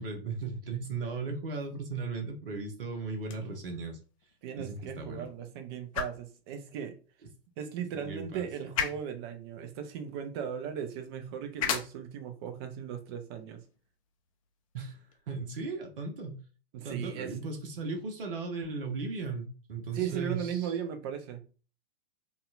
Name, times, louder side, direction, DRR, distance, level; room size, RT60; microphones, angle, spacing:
voice 1, 0.0-4.0 4.6-5.3 7.9-8.5 14.7-16.4 16.8-20.7, right 4 dB, 60° right, 0.9 m, -37 dB
sound 1, 3.1-15.2, left 8 dB, 35° left, 0.4 m, -41 dB
voice 2, 4.4-7.0 7.6-13.6 16.7-17.3 19.9-21.4, right 8 dB, 25° right, 0.4 m, -37 dB
4.0 x 2.3 x 2.4 m
figure-of-eight pair, 105°, 32 cm